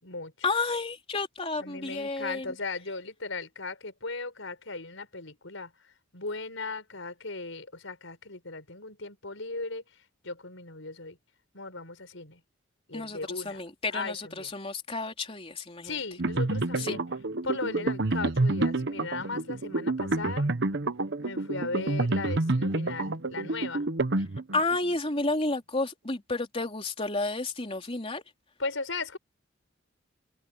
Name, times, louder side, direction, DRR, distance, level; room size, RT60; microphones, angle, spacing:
voice 1, 0.4-2.5 12.9-16.0 16.8-16.9 24.5-28.2, left 3 dB, 30° left, 3.5 m, -31 dB
voice 2, 1.6-5.7 6.1-9.8 10.2-11.2 11.5-12.4 12.9-13.6 13.9-14.5 15.8-17.0 17.4-20.5 21.2-23.9 28.6-29.2, left 3 dB, 70° left, 5.4 m, -37 dB
sound 1, 16.2-24.8, right 2 dB, 55° right, 1.0 m, -28 dB
head